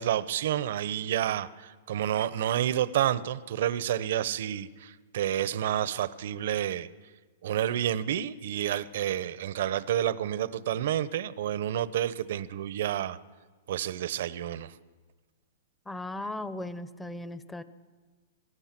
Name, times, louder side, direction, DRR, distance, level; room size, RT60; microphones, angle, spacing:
voice 1, 0.0-6.9 7.4-13.2 13.7-14.7, right 11 dB, 65° right, 16 dB, 0.9 m, -29 dB
voice 2, 15.9-17.6, left 2 dB, 10° left, 13 dB, 0.9 m, -37 dB
25.5 x 17.0 x 6.1 m, 1.4 s
hypercardioid pair, 140°, 0 cm